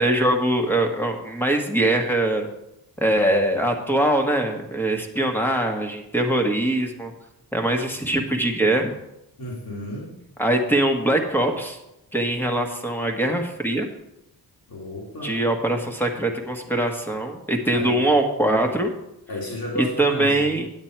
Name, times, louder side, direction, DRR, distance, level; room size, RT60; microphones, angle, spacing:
voice 1, 0.0-2.5 3.0-7.1 7.5-8.9 10.4-11.8 12.1-13.9 15.2-18.9 19.7-20.7, right 1 dB, 5° left, 3 dB, 1.4 m, -22 dB
voice 2, 9.4-10.1 14.7-15.4 17.7-18.0 19.3-20.6, left 1 dB, 60° left, -4 dB, 2.7 m, -32 dB
8.9 x 8.7 x 4.5 m, 0.86 s
cardioid pair, 90°, 40 cm